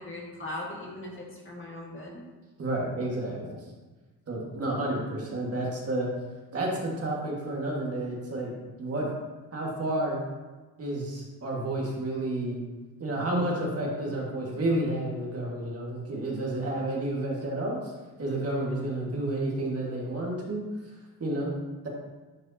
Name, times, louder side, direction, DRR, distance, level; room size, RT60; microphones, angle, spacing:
voice 1, 0.0-2.2, left 1 dB, 30° left, -3 dB, 2.1 m, -39 dB
voice 2, 2.6-3.5 4.3-6.1 6.5-8.5 8.8-9.1 9.5-10.2 10.8-12.6 13.0-17.8 18.2-20.7 21.2-21.5, right 1 dB, 40° right, -3 dB, 1.9 m, -30 dB
11.0 x 4.9 x 2.9 m, 1.2 s
cardioid pair, 90°, 38 cm